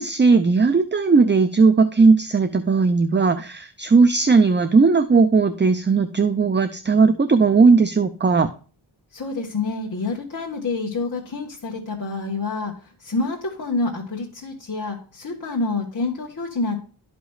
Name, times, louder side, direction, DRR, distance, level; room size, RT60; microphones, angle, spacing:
voice 1, 0.0-8.5, right 4 dB, 25° right, 10 dB, 0.5 m, -17 dB
voice 2, 9.1-16.8, left 3 dB, 40° left, -2 dB, 1.5 m, -27 dB
12.0 x 5.1 x 2.3 m, 0.37 s
wide cardioid pair, 90°, 48 cm